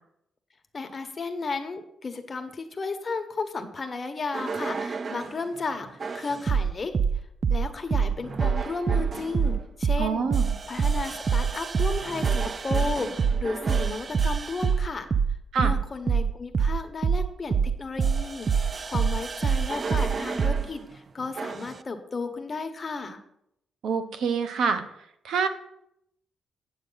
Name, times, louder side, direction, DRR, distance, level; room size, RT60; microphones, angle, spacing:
voice 1, 0.7-7.0 7.5-10.3 10.7-15.1 15.5-23.2, left 4 dB, 35° left, 6 dB, 1.1 m, -34 dB
sound 1, 4.3-5.3 6.0-20.7 21.4-21.7, right 6 dB, 40° right, 0.4 m, -26 dB
voice 2, 10.0-10.5 15.5-15.7 23.8-24.8 25.2-25.5, right 5 dB, 80° right, 9 dB, 0.8 m, -26 dB
8.8 x 7.9 x 4.0 m, 0.76 s
cardioid pair, 100°, 0 cm